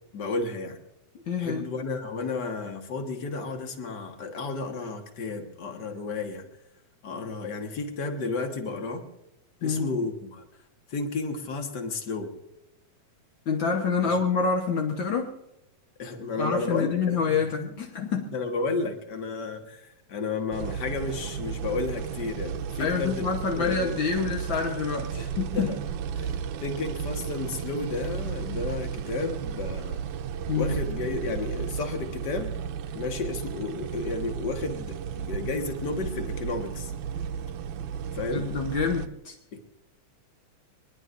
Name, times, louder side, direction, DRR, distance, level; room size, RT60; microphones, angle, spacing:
voice 1, 0.1-0.8 1.4-6.4 7.0-9.0 9.6-10.4 10.9-12.3 14.0-14.2 16.0-17.9 18.3-24.0 25.2-25.8 26.2-30.0 30.5-32.6 32.9-36.9 38.1-38.5 39.5-39.6, left 3 dB, 50° left, 4 dB, 1.3 m, -32 dB
voice 2, 1.3-1.7 9.6-9.9 13.5-15.3 16.4-18.3 22.8-25.7 30.5-30.8 38.3-39.3, left 5 dB, 70° left, 1 dB, 1.1 m, -27 dB
sound 1, 20.5-39.1, right 7 dB, 75° right, 1.9 m, -34 dB
22.5 x 21.0 x 2.6 m, 0.90 s
omnidirectional pair, 4.0 m